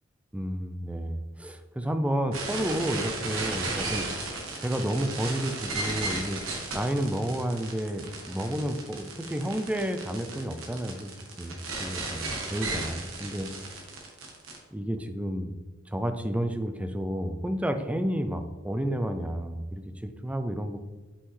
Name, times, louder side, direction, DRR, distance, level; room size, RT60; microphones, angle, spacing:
voice 1, 0.3-4.1 4.6-6.4 6.7-11.1 11.4-13.5 14.7-15.5 15.9-20.9, equal, 5° right, 8 dB, 0.4 m, -31 dB
sound 1, 2.3-14.6, right 3 dB, 80° right, 1.3 m, -35 dB
5.6 x 5.5 x 3.2 m, 1.2 s
head